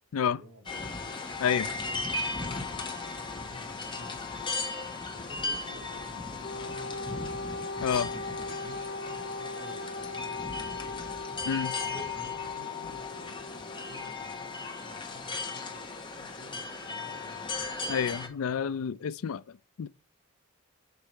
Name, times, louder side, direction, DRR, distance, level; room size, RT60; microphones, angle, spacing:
voice 1, 0.3-0.7 1.3-7.3 8.1-8.8 9.1-11.1 11.7-17.6, left 1 dB, 80° right, 4.2 m, -52 dB
sound 1, 0.6-18.3, left 3 dB, 20° left, 1.2 m, -36 dB
Wind instrument woodwind instrument, 6.4-14.1, left 2 dB, 40° left, 1.3 m, -40 dB
voice 2, 17.9-19.9, left 7 dB, 75° left, 0.4 m, -29 dB
6.8 x 4.7 x 4.3 m
head